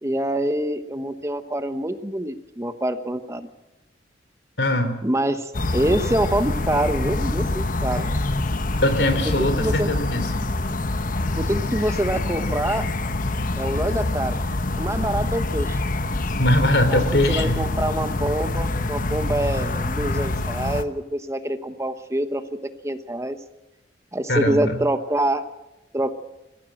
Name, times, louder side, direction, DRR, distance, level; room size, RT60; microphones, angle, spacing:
voice 1, 0.0-3.5 5.0-8.1 9.4-9.9 11.3-12.9 13.6-14.4 14.8-15.8 16.9-23.4 24.1-25.5 25.9-26.2, right 1 dB, 15° right, 10 dB, 1.0 m, -26 dB
voice 2, 4.6-4.9 8.8-10.4 16.3-17.6 24.3-24.8, left 1 dB, 80° left, 10 dB, 3.0 m, -21 dB
sound 1, 5.5-20.8, left 2 dB, 50° left, 1.0 m, -25 dB
22.5 x 15.0 x 7.7 m, 0.98 s
head